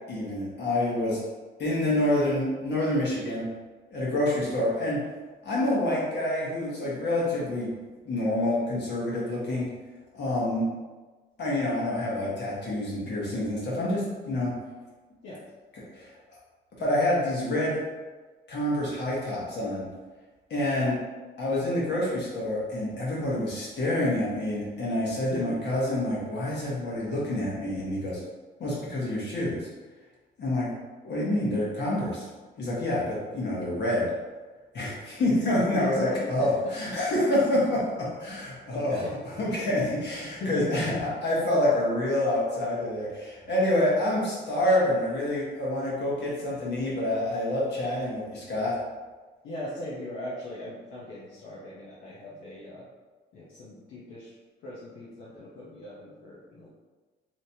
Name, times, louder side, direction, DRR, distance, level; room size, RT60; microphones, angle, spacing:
voice 1, 0.1-1.2 1.6-3.4 3.9-5.0 5.4-7.7 8.0-9.7 10.1-10.7 11.4-14.5 15.9-16.1 16.8-17.8 18.5-19.9 20.5-20.9 21.4-28.2 28.6-29.6 30.4-30.7 31.0-32.2 32.6-34.0 34.7-37.8 38.2-39.0 39.4-48.7, left 1 dB, 60° left, -6 dB, 1.3 m, -27 dB
voice 2, 35.8-36.3 38.7-39.1 40.2-40.9 49.4-52.9 53.3-54.3 54.6-56.7, left 1 dB, 80° left, -8 dB, 0.8 m, -38 dB
3.2 x 2.9 x 2.8 m, 1.3 s
cardioid pair, 90°, 20 cm